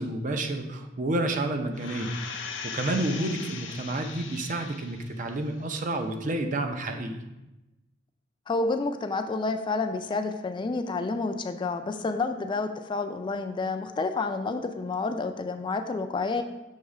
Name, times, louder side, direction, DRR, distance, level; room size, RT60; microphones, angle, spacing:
voice 1, 0.0-7.2, right 2 dB, 45° right, 6 dB, 0.6 m, -30 dB
sound 1, 1.7-5.1 5.6-5.7, left 6 dB, 80° left, 0.6 m, -39 dB
voice 2, 8.5-16.4, left 3 dB, 25° left, 7 dB, 0.3 m, -29 dB
6.6 x 3.1 x 4.7 m, 0.98 s
head